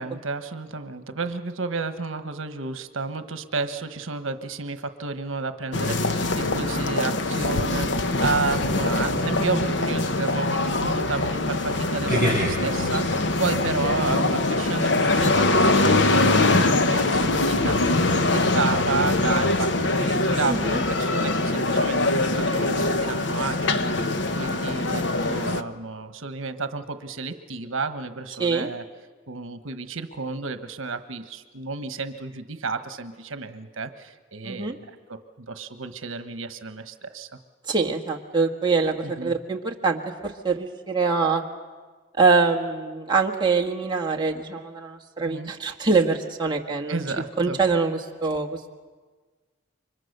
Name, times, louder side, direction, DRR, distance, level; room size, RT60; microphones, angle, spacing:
voice 1, 0.0-18.0 18.3-23.9 24.4-28.8 29.3-37.3 39.0-39.3 45.2-45.5 46.9-47.6, right 4 dB, 75° right, 9 dB, 1.2 m, -31 dB
sound 1, 5.7-25.6, left 2 dB, 60° left, 1.0 m, -23 dB
sound 2, 12.1-17.7, equal, 35° left, 5.9 m, -33 dB
voice 2, 20.5-20.8 24.9-25.1 28.4-28.7 34.4-34.7 37.7-41.4 42.2-47.0 47.4-48.5, right 4 dB, 20° right, 0 dB, 1.6 m, -24 dB
29.5 x 25.0 x 6.7 m, 1.4 s
head